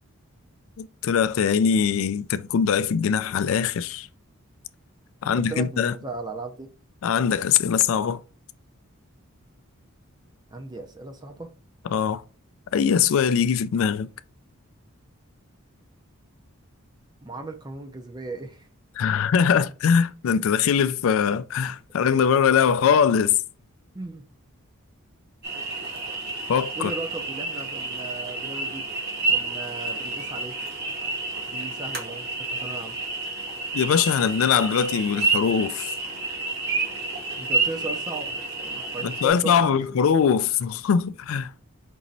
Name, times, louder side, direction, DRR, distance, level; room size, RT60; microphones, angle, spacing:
voice 1, 0.8-4.1 5.2-5.9 7.0-8.2 11.9-12.2 12.7-14.1 19.0-23.4 26.5-26.9 33.7-35.9 39.0-41.7, left 7 dB, 65° left, 0.3 m, -22 dB
voice 2, 5.2-6.7 10.5-11.5 17.2-18.7 23.9-24.2 26.8-28.9 29.2-30.5 31.5-32.9 37.4-39.8, right 3 dB, 20° right, 0.4 m, -36 dB
sound 1, 25.4-39.3, right 3 dB, 45° right, 1.0 m, -29 dB
5.3 x 3.0 x 2.6 m
head